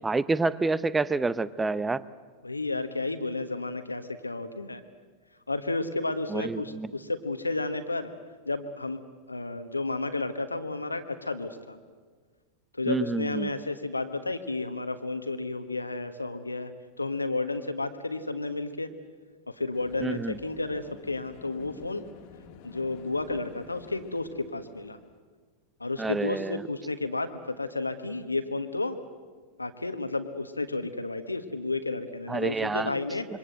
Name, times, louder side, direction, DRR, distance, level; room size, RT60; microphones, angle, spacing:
voice 1, 0.0-2.0 6.3-6.9 12.9-13.5 20.0-20.4 26.0-26.6 32.3-32.9, right 3 dB, 10° right, 18 dB, 0.8 m, -28 dB
voice 2, 2.4-4.8 5.5-8.1 8.4-9.0 9.3-11.8 12.7-16.7 17.0-18.9 19.5-22.1 22.6-25.0 25.8-29.0 29.6-33.3, left 3 dB, 80° left, 9 dB, 1.4 m, -32 dB
sound 1, 19.7-25.2, left 6 dB, 45° left, 2.0 m, -51 dB
26.5 x 24.0 x 7.9 m, 1.5 s
figure-of-eight pair, 90°, 0 cm